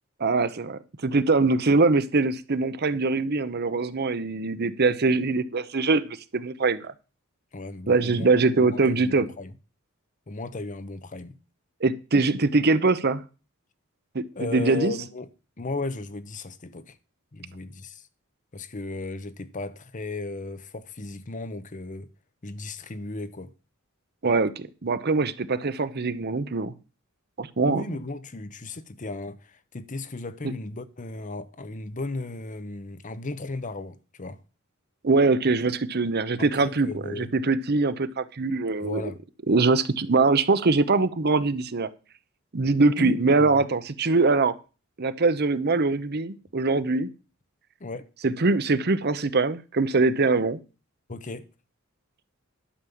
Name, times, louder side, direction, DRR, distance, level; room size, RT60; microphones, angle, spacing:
voice 1, 0.2-6.9 7.9-9.3 11.8-13.2 14.1-14.9 24.2-26.7 27.4-28.0 30.4-30.5 35.0-39.1 39.5-41.9 42.5-44.5 45.0-47.1 48.2-50.6, right 3 dB, 50° right, 0.8 m, -23 dB
voice 2, 7.5-8.3 8.5-9.5 10.3-11.4 14.3-15.3 15.6-17.0 17.3-18.1 18.5-22.1 22.4-23.5 27.7-34.4 36.4-37.3 38.8-39.2 43.0-43.7 47.8-48.1 51.1-51.4, left 3 dB, 40° left, 0.8 m, -35 dB
11.5 x 5.4 x 7.1 m
head